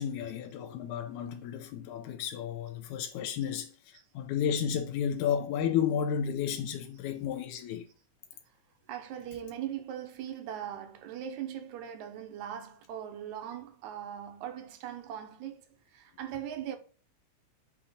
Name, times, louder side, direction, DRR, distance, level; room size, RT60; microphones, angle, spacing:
voice 1, 0.0-3.7 4.2-7.8, left 8 dB, 90° left, 2.1 m, -32 dB
voice 2, 8.9-15.6 15.9-16.8, right 10 dB, 85° right, 2.2 m, -40 dB
7.2 x 2.9 x 4.9 m
omnidirectional pair, 3.4 m